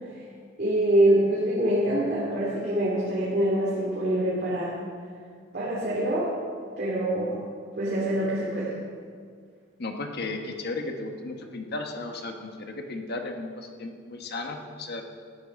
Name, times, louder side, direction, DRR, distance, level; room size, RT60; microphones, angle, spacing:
voice 1, 0.6-4.8 5.5-6.3 6.8-7.4 7.8-8.7, right 1 dB, 50° right, -7 dB, 2.7 m, -25 dB
voice 2, 9.8-15.0, left 2 dB, 55° left, 3 dB, 1.2 m, -35 dB
13.5 x 10.0 x 5.3 m, 2.1 s
head